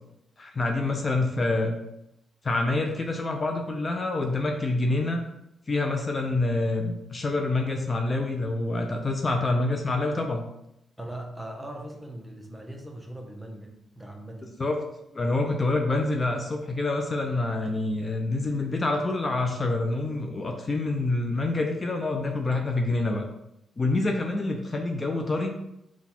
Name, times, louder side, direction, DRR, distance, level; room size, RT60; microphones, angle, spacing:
voice 1, 0.4-1.8 2.4-5.2 5.7-10.4 14.4-14.8 15.1-23.2 23.8-25.5, left 2 dB, 35° left, 2 dB, 0.5 m, -27 dB
voice 2, 11.0-14.5, right 1 dB, 5° right, 1 dB, 0.8 m, -40 dB
4.0 x 2.3 x 4.2 m, 0.83 s
cardioid pair, 70°, 0 cm